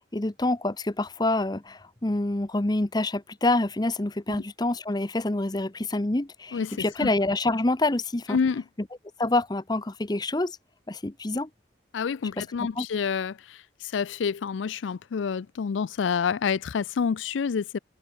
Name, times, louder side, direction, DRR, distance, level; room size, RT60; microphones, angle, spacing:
voice 1, 0.1-8.4 9.2-10.6 10.9-11.5 12.8-12.9, left 2 dB, 20° left, 0.8 m, -27 dB
voice 2, 6.5-7.1 8.3-8.6 11.9-17.8, left 6 dB, 90° left, 0.4 m, -28 dB
head